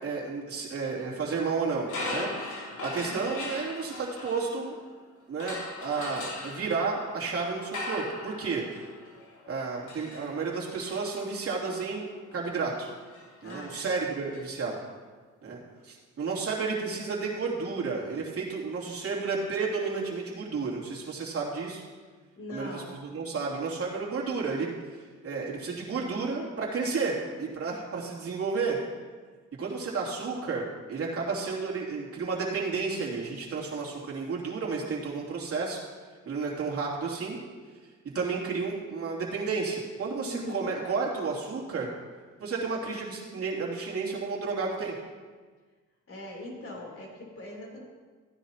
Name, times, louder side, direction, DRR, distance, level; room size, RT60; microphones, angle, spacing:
voice 1, 0.0-4.7 5.3-8.6 9.5-12.9 13.4-14.8 15.4-21.8 22.5-22.8 23.1-24.7 25.2-28.8 29.6-35.8 36.2-37.4 38.1-41.9 42.4-44.9, right 4 dB, 50° right, -3 dB, 3.0 m, -32 dB
sound 1, 1.8-4.9 5.4-14.4, left 2 dB, 75° left, 3.1 m, -40 dB
voice 2, 3.0-3.3 13.4-14.1 22.4-23.0 40.2-40.7 46.1-47.8, left 1 dB, 45° left, -1 dB, 3.5 m, -41 dB
15.5 x 10.0 x 2.9 m, 1.5 s
cardioid pair, 90°, 30 cm